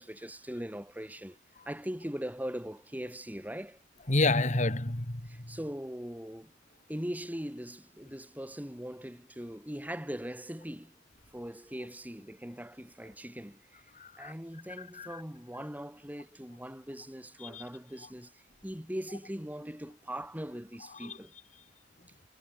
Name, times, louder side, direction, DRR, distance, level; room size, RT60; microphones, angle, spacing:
voice 1, 0.0-1.4 1.6-3.8 5.2-6.5 6.9-11.0 11.3-13.8 14.2-21.3, equal, 10° right, 4.7 m, -40 dB
voice 2, 4.1-5.5 14.0-14.3 14.9-15.2 17.4-17.6 21.0-21.1, left 2 dB, 40° left, 2.2 m, -29 dB
head